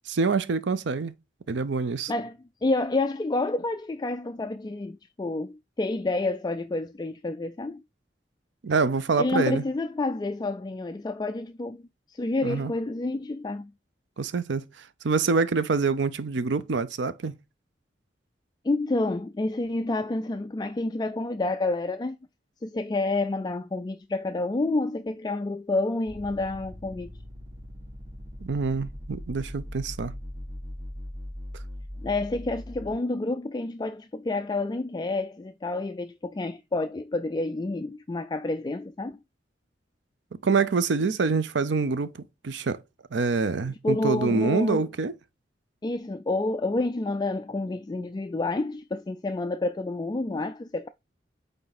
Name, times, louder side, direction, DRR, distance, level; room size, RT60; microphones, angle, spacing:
voice 1, 0.1-1.1 1.5-2.1 8.6-9.6 12.4-12.7 14.2-17.3 28.4-30.1 40.4-42.1 42.4-42.8 43.1-45.1, right 4 dB, 80° right, 0.6 m, -26 dB
voice 2, 2.1-7.8 9.2-11.8 12.1-13.7 18.6-22.2 22.6-27.1 32.0-39.2 43.7-44.9 45.8-50.9, left 2 dB, 20° left, 0.3 m, -29 dB
sound 1, 26.1-32.9, left 1 dB, 20° right, 2.0 m, -40 dB
8.7 x 3.4 x 4.0 m
head